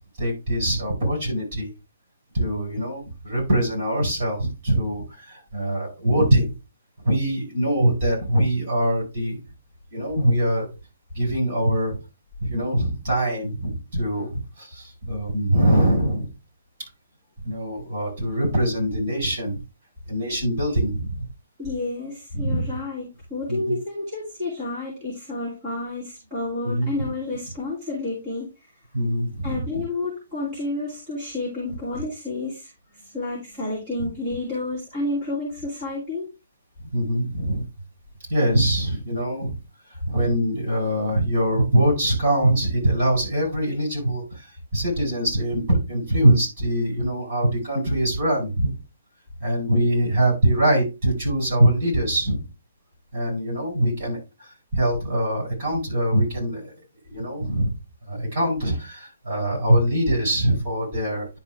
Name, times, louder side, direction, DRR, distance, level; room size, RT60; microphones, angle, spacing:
voice 1, 0.2-1.7 2.3-6.5 7.0-9.4 9.9-10.7 11.1-12.0 12.4-16.3 17.4-19.6 20.1-21.3 22.3-22.7 23.5-23.7 26.6-27.1 28.9-29.6 34.0-34.1 36.9-37.6 38.3-39.6 40.1-48.7 49.4-52.4 53.1-56.7 57.1-57.7 58.1-61.3, right 1 dB, 35° right, -2 dB, 4.8 m, -23 dB
voice 2, 21.6-28.7 29.4-36.3, left 2 dB, 15° right, -8 dB, 2.6 m, -30 dB
10.5 x 4.4 x 3.5 m, 0.26 s
hypercardioid pair, 180°, 0 cm